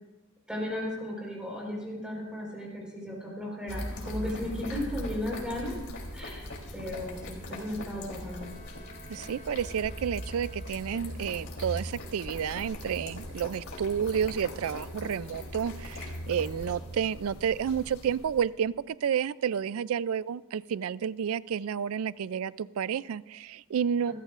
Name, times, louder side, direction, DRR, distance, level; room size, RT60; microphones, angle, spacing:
voice 1, 0.5-5.8 6.1-8.5 24.1-24.2, left 1 dB, 5° right, -3 dB, 4.1 m, -35 dB
sound 1, 3.7-18.5, left 1 dB, 70° left, 3.3 m, -40 dB
Bowed string instrument, 8.1-11.3, equal, 35° left, 6.0 m, -53 dB
voice 2, 9.1-24.1, right 8 dB, 70° right, 18 dB, 0.3 m, -30 dB
28.5 x 14.0 x 2.5 m, 1.1 s
head